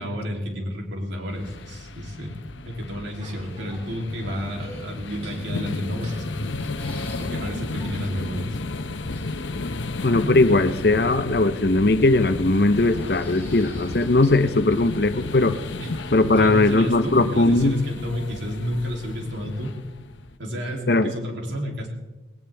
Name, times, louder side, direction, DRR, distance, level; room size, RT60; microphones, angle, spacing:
voice 1, 0.0-2.4 2.7-6.6 7.2-8.6 15.8-19.7 20.4-21.9, equal, 80° right, 0 dB, 3.2 m, -31 dB
sound 1, 1.3-20.4, left 3 dB, 85° left, 0.9 m, -33 dB
sound 2, 3.2-8.2, right 1 dB, 35° right, 3.2 m, -44 dB
sound 3, 6.6-7.3 7.7-7.8 8.0-8.1 9.1-9.5 10.8-11.4 12.8-14.4 14.7-14.8, left 1 dB, 5° left, 4.6 m, -48 dB
voice 2, 10.0-15.6 16.1-17.8 20.9-21.1, left 2 dB, 55° left, 11 dB, 0.8 m, -19 dB
19.5 x 18.5 x 3.5 m, 1.1 s
head